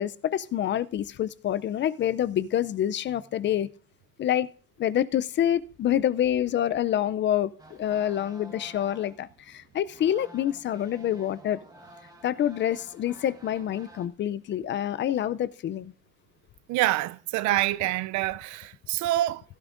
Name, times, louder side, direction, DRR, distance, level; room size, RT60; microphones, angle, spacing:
voice 1, 0.0-3.7 4.2-4.5 4.8-7.5 7.8-11.6 12.2-15.9, left 11 dB, 40° left, 0.4 m, -27 dB
sound 1, 7.6-14.1, right 1 dB, 15° right, 1.4 m, -51 dB
voice 2, 16.7-19.4, right 16 dB, 75° right, 0.5 m, -26 dB
15.5 x 12.5 x 2.5 m
cardioid pair, 140°, 29 cm